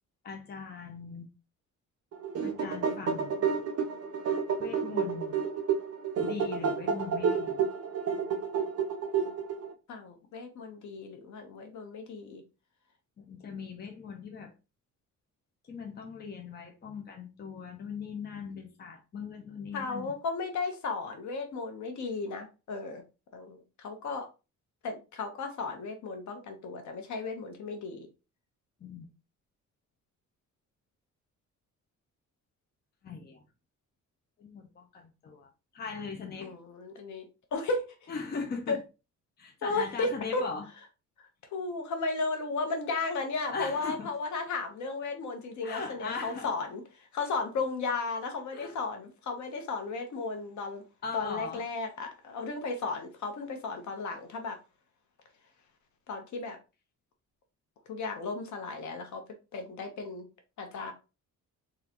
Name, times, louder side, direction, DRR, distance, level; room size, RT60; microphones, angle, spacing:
voice 1, 0.2-1.3 2.4-3.6 4.6-5.5 6.2-7.6 13.2-14.5 15.7-20.1 28.8-29.1 33.0-33.4 34.4-36.5 38.1-38.8 39.4-40.7 43.5-44.1 45.6-46.5 48.5-48.8 51.0-51.6, left 5 dB, 30° left, 0.7 m, -40 dB
sound 1, 2.1-9.7, right 6 dB, 55° right, 0.7 m, -30 dB
voice 2, 9.9-12.4 19.7-23.0 23.3-24.3 24.8-28.1 36.4-37.2 37.5-38.1 38.7-38.8 39.6-40.4 41.5-46.8 47.1-50.8 51.1-54.6 56.1-56.6 57.9-59.2 59.5-60.3 60.6-60.9, left 3 dB, 70° left, 1.1 m, -34 dB
3.8 x 3.2 x 2.9 m
cardioid pair, 155°, 30 cm